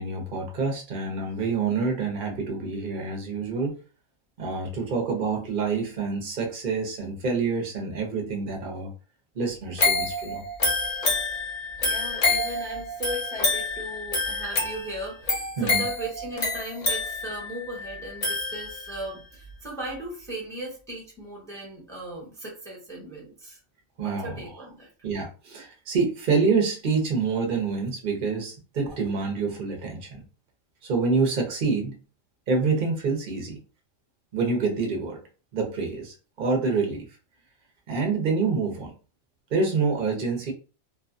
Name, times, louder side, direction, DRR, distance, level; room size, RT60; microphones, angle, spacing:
voice 1, 0.0-3.7 4.4-8.9 9.3-10.4 15.6-15.8 24.0-24.4 25.0-30.2 30.8-31.9 32.5-33.6 34.3-35.2 35.5-37.0 37.9-38.9 39.5-40.5, right 4 dB, 45° right, 1 dB, 0.8 m, -27 dB
sound 1, 9.8-19.0 19.5-19.6, left 3 dB, 70° left, 0.3 m, -27 dB
voice 2, 11.8-23.6 24.0-24.9, right 1 dB, 5° left, -3 dB, 0.7 m, -37 dB
2.7 x 2.2 x 2.5 m, 0.35 s
omnidirectional pair, 1.5 m